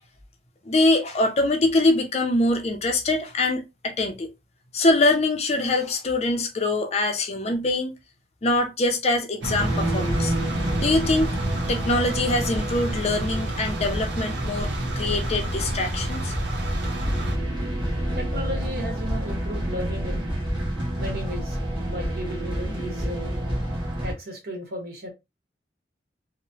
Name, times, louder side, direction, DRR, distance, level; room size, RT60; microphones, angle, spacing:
voice 1, 0.7-4.3 4.7-7.9 8.4-10.3 10.8-11.4 11.7-14.7 15.0-16.3, left 2 dB, 35° left, 0.5 m, -23 dB
sound 1, 9.4-17.4, right 1 dB, 90° right, 0.7 m, -29 dB
sound 2, 9.6-24.1, right 1 dB, 25° right, 1.1 m, -29 dB
voice 2, 17.9-20.2 21.0-21.6 21.9-23.4 24.0-25.1, equal, 60° right, 1.1 m, -35 dB
3.0 x 2.1 x 2.6 m
head